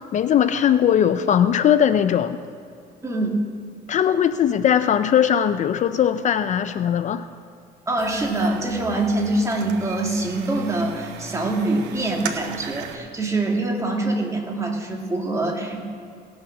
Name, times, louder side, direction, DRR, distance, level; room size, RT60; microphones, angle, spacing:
voice 1, 0.0-2.4 3.9-7.2, left 9 dB, 45° left, 11 dB, 0.4 m, -19 dB
voice 2, 3.0-3.4 7.9-15.8, right 2 dB, 20° right, 0 dB, 2.1 m, -24 dB
sound 1, 8.0-13.0, right 7 dB, 85° right, 0.9 m, -36 dB
18.0 x 6.3 x 5.9 m, 2.3 s
cardioid pair, 110°, 17 cm